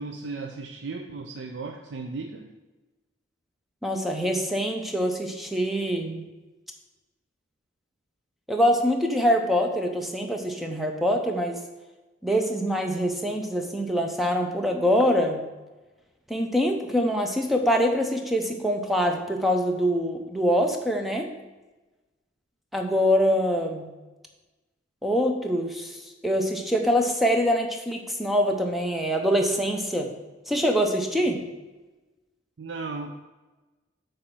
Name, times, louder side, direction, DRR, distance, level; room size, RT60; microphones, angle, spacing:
voice 1, 0.0-2.5 32.6-33.2, right 3 dB, 70° right, 4 dB, 0.5 m, -35 dB
voice 2, 3.8-6.2 8.5-11.6 12.2-15.4 16.3-21.3 22.7-23.9 25.0-30.1 30.5-31.4, equal, ahead, 3 dB, 0.6 m, -24 dB
8.1 x 3.3 x 6.0 m, 1.2 s
head